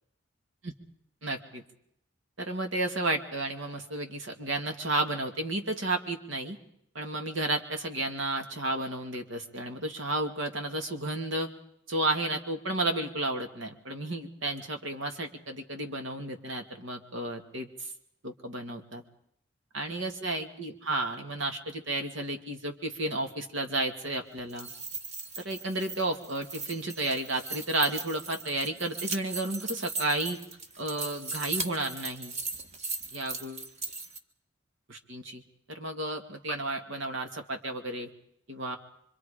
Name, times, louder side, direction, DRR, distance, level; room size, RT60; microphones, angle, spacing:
voice 1, 1.2-1.6 2.4-6.6 6.9-11.5 11.9-17.9 18.2-19.0 19.7-24.7 25.4-30.4 30.8-32.3 33.1-33.7 34.9-35.4 35.7-38.1 38.5-38.8, right 2 dB, 85° right, 4 dB, 2.3 m, -32 dB
sound 1, 24.4-34.2, right 3 dB, 35° right, 1.4 m, -38 dB
25.0 x 24.5 x 5.1 m, 0.73 s
head